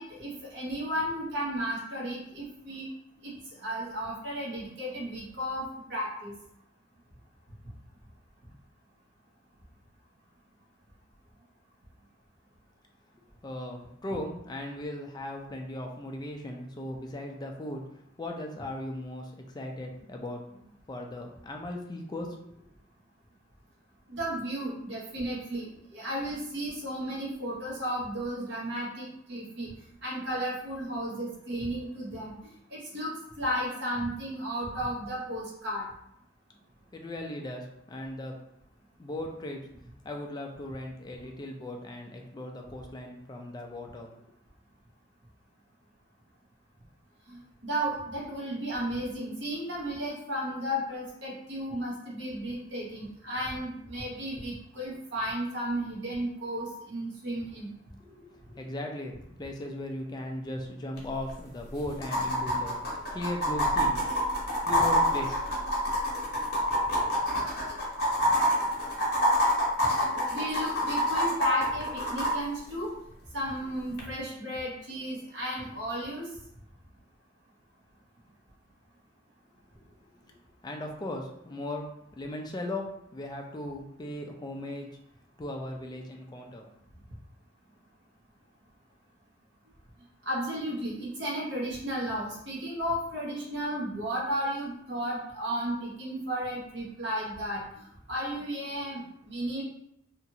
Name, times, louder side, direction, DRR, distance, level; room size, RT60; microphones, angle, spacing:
voice 1, 0.0-2.9 3.2-3.3 3.6-6.3 24.1-29.7 30.0-35.8 47.3-57.7 70.0-72.9 73.3-76.3 90.2-97.6 98.1-99.6, equal, 60° right, -4 dB, 0.9 m, -34 dB
voice 2, 13.4-17.8 18.2-22.7 36.9-38.4 39.0-39.6 40.0-44.3 58.0-62.8 63.1-64.0 64.6-65.4 79.8-79.9 80.2-80.3 80.6-85.0 85.4-86.7, left 1 dB, 20° left, 1 dB, 0.3 m, -38 dB
sound 1, 61.0-61.1 61.3-61.4 62.0-72.3 74.0-74.1, equal, 55° left, 0.8 m, -26 dB
2.9 x 2.4 x 2.7 m, 0.76 s
head